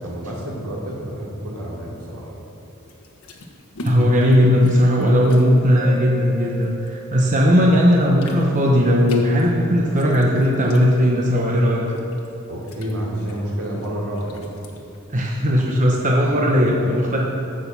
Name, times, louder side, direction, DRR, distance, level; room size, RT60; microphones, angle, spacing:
voice 1, 0.0-2.3 12.5-14.4 16.3-16.5, equal, 75° right, -4 dB, 3.1 m, -29 dB
sound 1, 2.9-7.4 7.7-15.8, left 1 dB, 70° left, 1.4 m, -41 dB
voice 2, 3.8-11.8 15.1-17.2, equal, 35° right, -2 dB, 1.0 m, -17 dB
Mallet percussion, 5.8-8.3, left 1 dB, 20° left, 1.9 m, -36 dB
15.0 x 6.4 x 6.0 m, 3.0 s
head